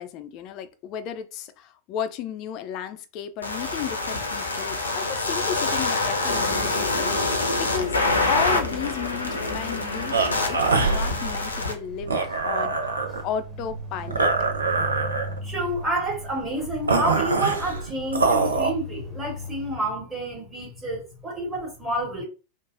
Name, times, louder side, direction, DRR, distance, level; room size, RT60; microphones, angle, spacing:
voice 1, 0.0-8.0 8.3-14.3, left 9 dB, 40° left, 0.4 m, -34 dB
sound 1, 3.4-11.7, left 2 dB, 75° left, 0.6 m, -26 dB
sound 2, 6.0-19.8, left 1 dB, ahead, 0.9 m, -41 dB
sound 3, 10.1-18.7, right 4 dB, 75° right, 0.5 m, -25 dB
voice 2, 15.4-22.2, right 1 dB, 20° right, 1.2 m, -29 dB
3.1 x 2.1 x 2.4 m
figure-of-eight pair, 90°, 0 cm